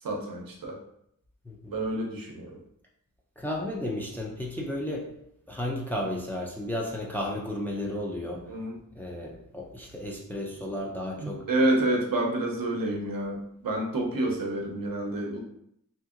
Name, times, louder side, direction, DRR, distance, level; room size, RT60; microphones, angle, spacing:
voice 1, 0.0-0.8 1.7-2.6 8.5-8.8 11.2-15.4, right 1 dB, 75° right, 0 dB, 0.7 m, -28 dB
voice 2, 3.4-5.1 5.5-8.4 9.0-11.4, left 1 dB, 5° left, -2 dB, 0.5 m, -33 dB
2.8 x 2.7 x 2.4 m, 0.74 s
wide cardioid pair, 60°, 35 cm